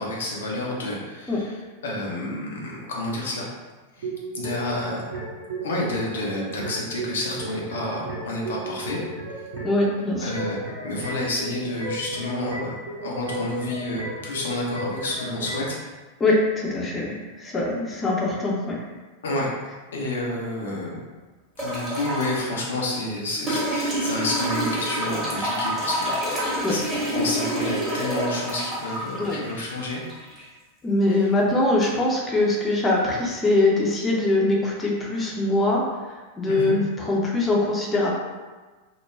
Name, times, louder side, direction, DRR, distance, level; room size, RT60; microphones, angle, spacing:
voice 1, 0.0-3.5 4.0-5.1 5.6-9.0 10.2-15.8 19.2-19.5 19.9-21.0 21.6-30.0 31.2-31.3 36.5-36.8, left 2 dB, 65° left, -2 dB, 0.6 m, -30 dB
sound 1, 4.0-15.8, right 2 dB, 55° right, 0.7 m, -34 dB
voice 2, 9.6-10.3 16.2-18.8 26.6-26.8 29.2-29.4 30.8-38.1, left 2 dB, 15° left, -3 dB, 0.6 m, -23 dB
sound 2, 21.6-22.4 23.5-30.5 31.8-31.9, right 1 dB, 10° right, 0.9 m, -28 dB
2.3 x 2.1 x 3.2 m, 1.3 s
figure-of-eight pair, 90°, 0 cm